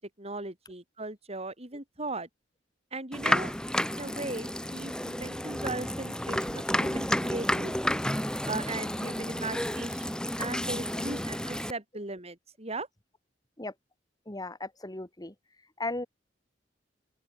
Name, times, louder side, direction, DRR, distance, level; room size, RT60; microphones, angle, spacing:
voice 1, 0.2-2.3 2.9-3.5 4.0-8.0 8.5-12.9, right 2 dB, 35° right, 6.0 m, -38 dB
sound 1, 3.1-11.7, equal, 5° left, 6.8 m, -31 dB
voice 2, 11.0-11.3 13.6-13.7 14.3-15.3 15.8-16.1, left 2 dB, 20° left, 1.9 m, -36 dB
open air
head